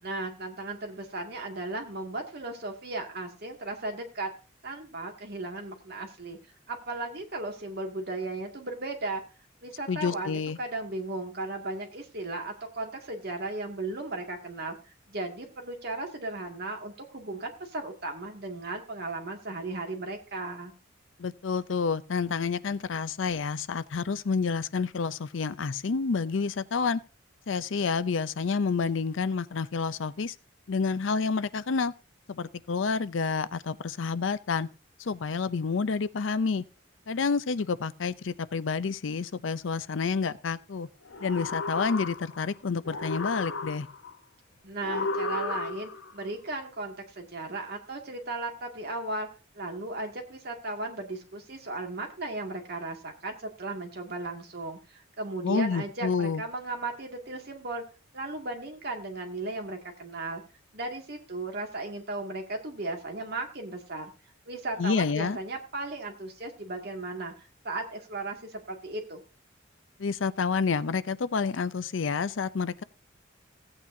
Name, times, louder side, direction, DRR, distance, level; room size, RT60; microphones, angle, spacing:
voice 1, 0.0-4.3 4.6-6.4 6.7-9.2 9.6-14.8 15.1-20.7 44.6-49.3 49.5-57.8 58.1-60.4 60.7-64.1 64.5-69.2, right 2 dB, 55° right, 2.2 m, -36 dB
voice 2, 9.9-10.6 21.2-27.0 27.5-30.3 30.7-31.9 32.3-34.7 35.0-36.6 37.1-40.9 41.2-43.9 55.4-56.4 64.8-65.4 70.0-72.8, left 5 dB, 75° left, 0.5 m, -29 dB
sound 1, 41.1-42.5 42.8-44.1 44.8-46.1, left 3 dB, 90° left, 1.0 m, -33 dB
16.5 x 8.8 x 2.7 m
head